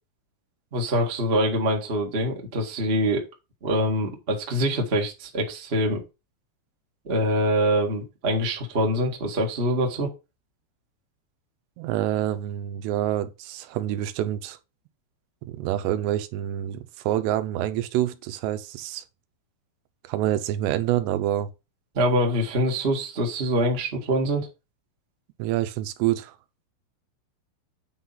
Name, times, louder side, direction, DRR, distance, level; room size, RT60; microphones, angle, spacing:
voice 1, 0.7-3.2 3.6-6.0 7.0-10.1 21.9-24.5, equal, 45° right, 0.8 m, -24 dB
voice 2, 11.8-14.6 15.4-19.0 20.0-21.5 25.4-26.4, right 12 dB, 90° right, 2.9 m, -27 dB
8.9 x 3.9 x 5.8 m
omnidirectional pair, 4.8 m